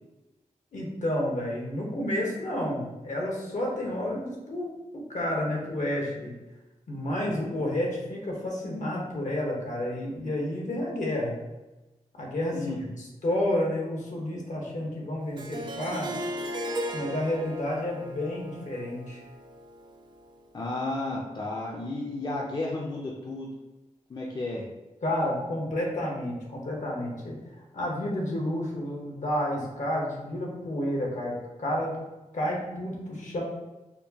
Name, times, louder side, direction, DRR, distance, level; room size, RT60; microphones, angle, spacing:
voice 1, 0.7-4.7 5.1-6.3 6.9-11.4 12.2-12.6 13.2-16.2 16.9-19.2 25.0-27.4 27.7-31.9 32.3-33.4, left 1 dB, 70° left, -1 dB, 1.0 m, -30 dB
voice 2, 7.2-7.5 12.5-13.0 20.5-23.5 24.1-24.6, left 2 dB, 35° left, -2 dB, 0.5 m, -33 dB
Harp, 15.4-20.3, equal, 35° right, 0.4 m, -37 dB
4.4 x 2.3 x 2.8 m, 1.1 s
wide cardioid pair, 90°, 13 cm